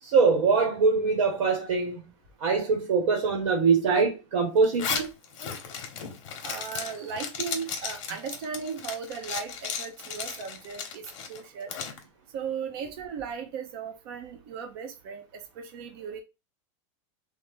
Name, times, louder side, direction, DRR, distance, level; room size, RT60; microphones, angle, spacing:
voice 1, 0.0-2.1 2.4-5.1, right 4 dB, 75° right, 1.1 m, -23 dB
Zipper (clothing), 4.6-12.0, left 6 dB, 65° left, 0.8 m, -35 dB
voice 2, 6.4-11.0 11.3-11.7 12.3-16.2, right 6 dB, 45° right, 0.6 m, -37 dB
3.3 x 2.0 x 3.4 m
supercardioid pair, 170°, 17 cm